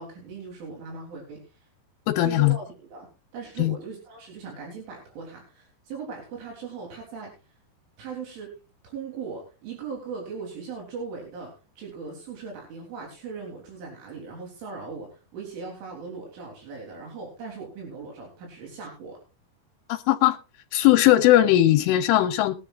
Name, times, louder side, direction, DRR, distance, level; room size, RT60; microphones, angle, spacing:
voice 1, 0.0-1.4 2.2-3.1 3.3-7.3 8.0-8.5 8.8-19.2, right 5 dB, 80° right, 5.9 m, -39 dB
voice 2, 2.2-2.6 3.6-3.8 19.9-20.4 20.7-22.5, left 14 dB, 85° left, 3.3 m, -19 dB
21.5 x 10.0 x 2.5 m
omnidirectional pair, 5.5 m